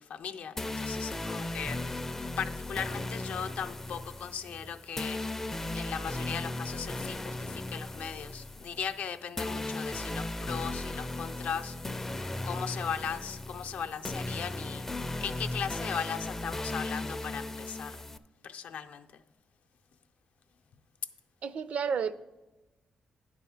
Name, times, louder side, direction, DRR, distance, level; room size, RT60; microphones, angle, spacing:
voice 1, 0.0-1.8 2.4-5.5 5.7-11.8 12.4-14.9 15.2-18.0 18.4-19.2, left 7 dB, 75° left, 6 dB, 0.5 m, -38 dB
sound 1, 0.6-18.2, left 2 dB, 15° left, 0.4 m, -37 dB
voice 2, 21.4-22.2, right 6 dB, 60° right, 14 dB, 0.4 m, -31 dB
9.7 x 4.2 x 7.1 m, 1.1 s
cardioid pair, 120°, 2 cm